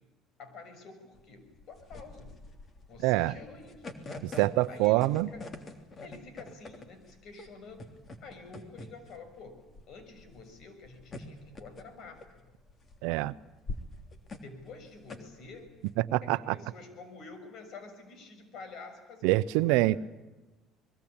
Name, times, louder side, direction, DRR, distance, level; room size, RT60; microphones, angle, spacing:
voice 1, 0.4-2.3 2.9-3.9 4.7-5.7 6.0-7.9 8.2-9.6 9.9-12.5 14.4-15.7 16.2-20.0, left 4 dB, 60° left, 6.7 m, -49 dB
sound 1, 1.2-15.9, left 2 dB, 35° left, 3.3 m, -45 dB
voice 2, 3.0-3.3 4.2-5.3 13.0-13.3 16.1-16.5 19.2-19.9, right 18 dB, 85° right, 0.8 m, -25 dB
25.5 x 21.5 x 8.9 m
supercardioid pair, 100°, 0 cm